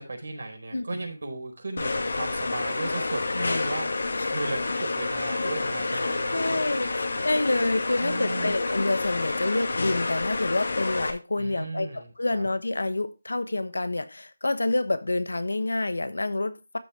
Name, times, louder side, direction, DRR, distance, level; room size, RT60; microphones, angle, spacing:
voice 1, 0.0-3.9 4.3-7.3 8.0-8.5 11.4-12.4, right 2 dB, 65° right, 4.3 m, -36 dB
sound 1, 1.8-11.1, left 3 dB, 65° left, 1.9 m, -29 dB
voice 2, 3.3-3.7 4.2-4.4 5.9-16.8, left 2 dB, 90° left, 1.2 m, -28 dB
13.0 x 5.7 x 3.4 m
figure-of-eight pair, 170°, 0 cm